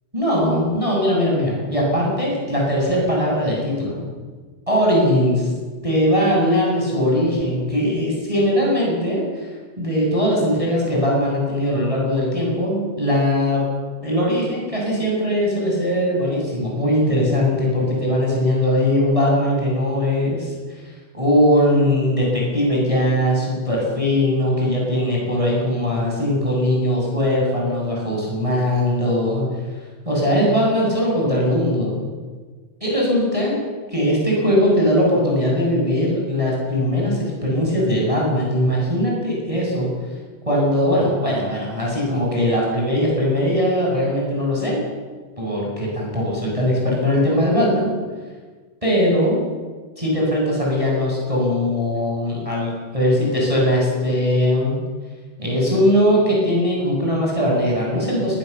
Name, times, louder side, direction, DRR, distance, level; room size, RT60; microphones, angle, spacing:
voice 1, 0.1-4.1 4.7-5.5 5.8-9.5 9.8-13.6 14.0-20.8 21.1-29.4 30.0-32.0 32.8-33.6 33.9-39.9 40.5-44.8 45.4-47.9 48.8-49.4 50.0-54.8 55.4-58.4, equal, 10° right, -3 dB, 7.7 m, -20 dB
22.0 x 20.5 x 7.0 m, 1.4 s
omnidirectional pair, 3.7 m